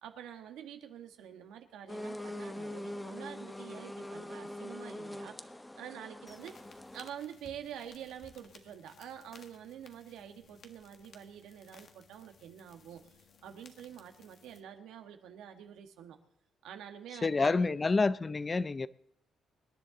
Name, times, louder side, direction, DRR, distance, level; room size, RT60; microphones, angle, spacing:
voice 1, 0.0-6.6 6.9-13.0 13.4-16.2 16.6-17.8, right 9 dB, 90° right, 1.5 m, -47 dB
sound 1, 1.9-7.1, left 1 dB, 10° left, 0.8 m, -43 dB
sound 2, 6.3-14.6, left 5 dB, 55° left, 1.5 m, -59 dB
voice 2, 17.2-18.9, left 3 dB, 30° left, 0.5 m, -28 dB
25.0 x 10.0 x 3.8 m
cardioid pair, 90°, 0 cm